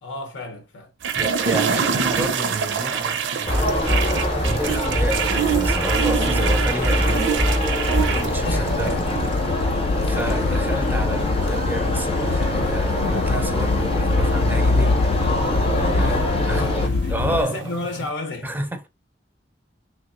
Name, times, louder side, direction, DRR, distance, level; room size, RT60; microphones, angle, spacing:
voice 1, 0.0-0.9 8.4-9.2 10.1-10.9 15.7-18.5, left 2 dB, 90° left, 0.8 m, -33 dB
sound 1, 1.0-18.1, right 7 dB, 80° right, 0.5 m, -27 dB
voice 2, 1.1-7.3 8.0-9.0 10.0-15.1 15.9-16.8 17.1-17.7 18.4-18.9, right 1 dB, 10° right, 0.5 m, -30 dB
sound 2, 3.5-16.9, left 1 dB, 30° left, 0.7 m, -24 dB
sound 3, 7.0-17.4, left 3 dB, 60° left, 0.3 m, -24 dB
3.3 x 2.9 x 2.5 m
head